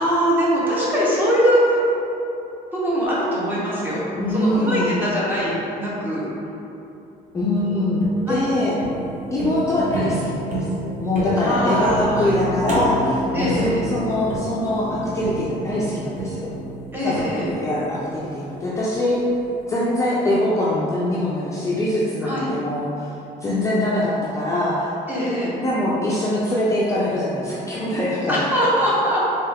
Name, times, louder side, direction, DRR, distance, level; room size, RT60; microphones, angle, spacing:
voice 1, 0.0-1.8 2.7-6.3 8.3-8.5 11.4-12.4 13.3-13.8 16.9-17.5 22.2-22.5 25.1-25.5 28.3-29.2, equal, 10° right, -7 dB, 0.9 m, -22 dB
voice 2, 4.1-5.0 7.3-8.8 9.3-10.7 11.0-16.5 17.0-19.2 19.7-23.1 23.4-24.9 25.6-28.5, left 1 dB, 20° left, -7 dB, 0.4 m, -23 dB
sound 1, 7.6-18.8, equal, 50° right, 0.8 m, -29 dB
3.4 x 3.1 x 3.4 m, 2.9 s
cardioid pair, 135°, 16 cm